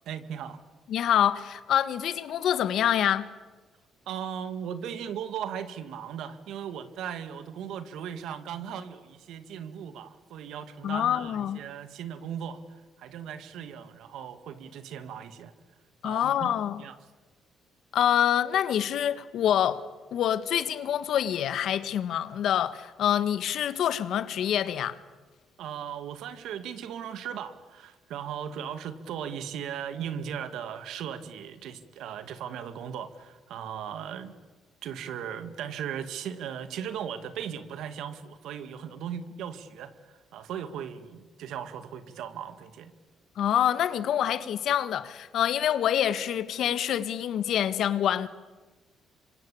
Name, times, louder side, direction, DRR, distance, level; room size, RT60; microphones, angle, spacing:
voice 1, 0.1-0.6 4.1-12.6 13.0-15.5 16.0-16.5 16.8-17.0 25.6-34.4 34.8-42.9, right 8 dB, 80° right, 2.1 m, -37 dB
voice 2, 0.9-3.3 10.8-11.6 16.0-16.8 17.9-19.8 20.1-25.0 43.4-48.3, left 10 dB, 70° left, 1.5 m, -26 dB
26.0 x 25.0 x 8.7 m
cardioid pair, 80°, 0 cm